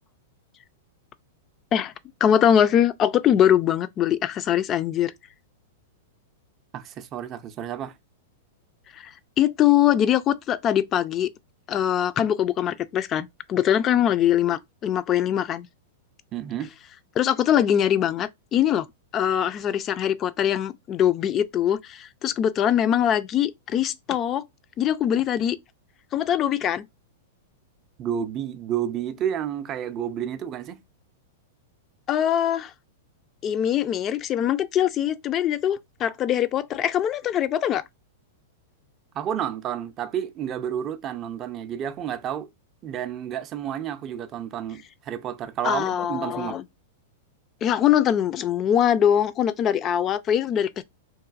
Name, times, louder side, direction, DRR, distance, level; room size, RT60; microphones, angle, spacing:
voice 1, 2.2-5.1 8.9-11.3 11.7-15.7 17.2-18.9 19.1-24.4 24.8-25.6 26.1-26.9 32.1-32.7 33.4-37.8 45.6-46.6 47.6-50.8, left 10 dB, 30° left, 0.3 m, -22 dB
voice 2, 6.7-7.9 16.3-16.7 28.0-30.8 39.1-42.5 42.8-46.6, right 9 dB, 35° right, 0.4 m, -30 dB
2.9 x 2.5 x 2.4 m
hypercardioid pair, 105°, 0 cm